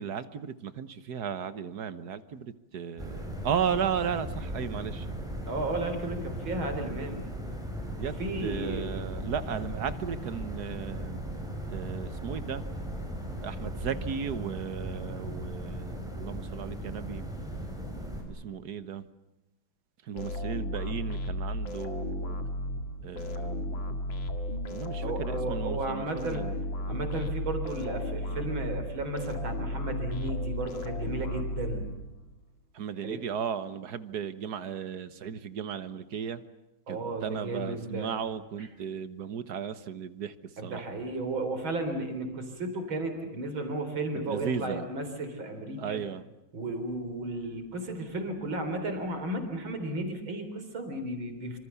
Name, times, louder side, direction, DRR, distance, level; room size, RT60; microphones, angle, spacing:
voice 1, 0.0-5.1 8.0-11.2 11.7-12.7 13.4-17.3 18.3-19.1 20.1-22.4 23.0-23.8 24.7-26.5 32.7-36.4 36.9-40.3 40.6-40.8 44.3-44.9 45.8-46.2, right 7 dB, 55° right, 13 dB, 1.6 m, -35 dB
sound 1, 3.0-18.2, equal, ahead, 6.2 m, -37 dB
voice 2, 5.4-7.2 8.2-8.9 25.0-26.4 26.9-31.8 33.0-33.2 36.9-38.1 38.6-38.7 40.6-46.0 46.5-51.6, right 2 dB, 75° right, 6 dB, 4.6 m, -34 dB
sound 2, 20.2-32.4, left 1 dB, 70° left, 2.7 m, -34 dB
26.0 x 26.0 x 7.0 m, 0.95 s
omnidirectional pair, 2.2 m